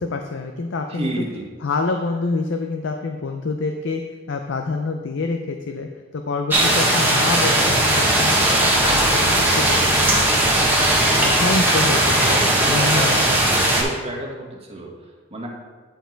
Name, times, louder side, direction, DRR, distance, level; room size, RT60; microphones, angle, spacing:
voice 1, 0.0-1.2 1.6-10.3 10.6-10.9 11.2-12.4 12.7-13.4, left 3 dB, 65° left, 4 dB, 0.5 m, -27 dB
voice 2, 0.9-1.5 12.2-14.9 15.3-15.5, right 1 dB, 30° right, -2 dB, 1.5 m, -30 dB
sound 1, 6.5-13.8, right 1 dB, 10° right, 1.4 m, -18 dB
10.5 x 4.5 x 4.6 m, 1.4 s
head